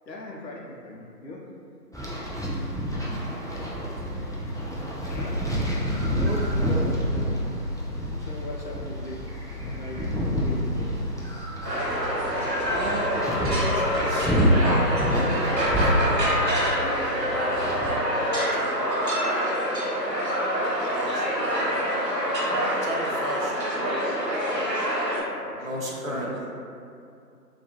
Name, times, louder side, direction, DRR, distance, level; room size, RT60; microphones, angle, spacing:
voice 1, 0.1-1.5 5.0-5.4 6.8-7.0 8.2-9.2 9.6-10.9 25.4-26.3, left 2 dB, 90° left, -2 dB, 0.7 m, -40 dB
sound 1, 1.9-18.0, equal, 10° left, 0.3 m, -28 dB
voice 2, 3.2-4.2 6.2-6.8 12.7-14.7 15.6-16.5 16.7-17.3 18.3-19.2 20.9-21.4 22.8-23.7 25.0-25.1 25.6-26.6, right 1 dB, 55° right, -5 dB, 0.5 m, -35 dB
sound 2, 11.6-25.2, equal, 80° right, 0.9 m, -26 dB
2.4 x 2.3 x 2.8 m, 2.5 s
figure-of-eight pair, 180°, 49 cm